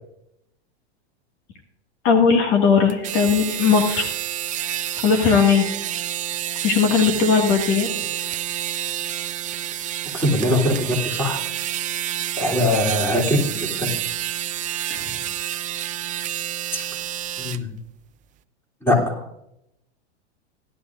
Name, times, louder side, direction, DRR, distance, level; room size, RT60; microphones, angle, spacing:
voice 1, 2.0-4.1 5.0-5.7 6.6-7.9 14.9-15.2, left 6 dB, 50° left, 3 dB, 1.9 m, -18 dB
sound 1, 2.9-17.6, right 12 dB, 25° right, 0.5 m, -29 dB
voice 2, 10.1-11.4 12.4-13.9 16.7-16.8 17.4-17.7 18.8-19.4, left 1 dB, 5° left, -2 dB, 3.1 m, -22 dB
17.0 x 11.5 x 2.5 m, 0.80 s
hypercardioid pair, 115°, 34 cm